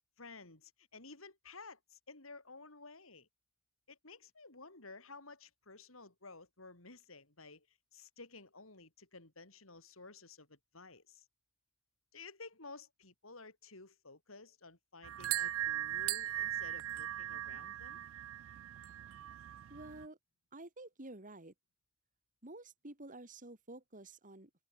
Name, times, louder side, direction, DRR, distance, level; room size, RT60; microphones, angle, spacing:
voice 1, 0.2-3.3 3.9-11.3 12.1-18.0, left 3 dB, 75° left, 5.1 m, -54 dB
sound 1, 15.0-20.1, right 13 dB, 70° right, 0.3 m, -39 dB
voice 2, 19.7-20.2 20.5-21.5 22.4-24.6, right 2 dB, 40° right, 3.4 m, -50 dB
open air
head